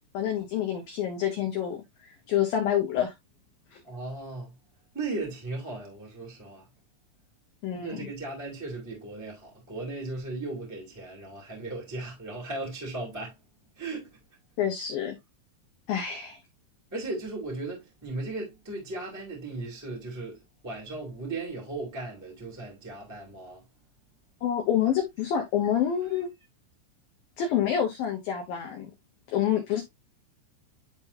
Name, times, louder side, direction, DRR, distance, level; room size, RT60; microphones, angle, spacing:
voice 1, 0.1-3.1 3.7-3.8 7.6-8.1 14.6-15.2 15.9-16.4 24.4-26.3 27.4-28.9 29.3-29.8, left 9 dB, 80° left, 2.1 m, -27 dB
voice 2, 3.8-4.5 4.9-6.7 7.8-13.4 13.7-14.2 15.9-16.1 16.9-23.6 26.1-26.2, right 2 dB, 5° right, 1.6 m, -37 dB
11.5 x 3.8 x 2.7 m
omnidirectional pair, 5.7 m